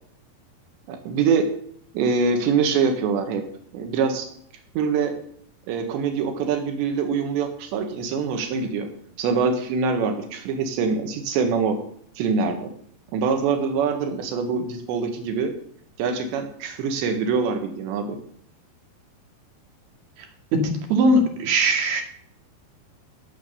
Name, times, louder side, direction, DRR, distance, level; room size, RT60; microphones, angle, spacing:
voice 1, 0.9-1.5 1.9-3.4 3.7-4.3 4.8-5.1 5.7-8.9 9.2-11.8 12.2-12.7 13.1-15.5 16.0-18.2, right 5 dB, 90° right, 5 dB, 3.9 m, -24 dB
voice 2, 20.5-22.0, right 1 dB, 65° right, 3 dB, 4.1 m, -20 dB
16.0 x 7.6 x 6.8 m, 0.65 s
omnidirectional pair, 4.9 m